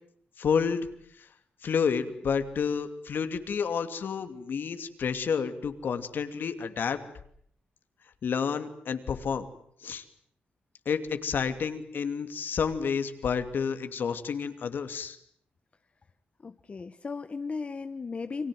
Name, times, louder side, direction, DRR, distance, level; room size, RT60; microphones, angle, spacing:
voice 1, 0.4-0.9 1.2-1.3 1.6-7.0 8.2-9.5 9.8-10.0 10.9-15.2, left 6 dB, 65° left, 9 dB, 2.7 m, -30 dB
voice 2, 16.4-18.5, left 4 dB, 35° left, 10 dB, 1.1 m, -36 dB
29.5 x 24.0 x 7.8 m, 0.65 s
wide cardioid pair, 125°, 4 cm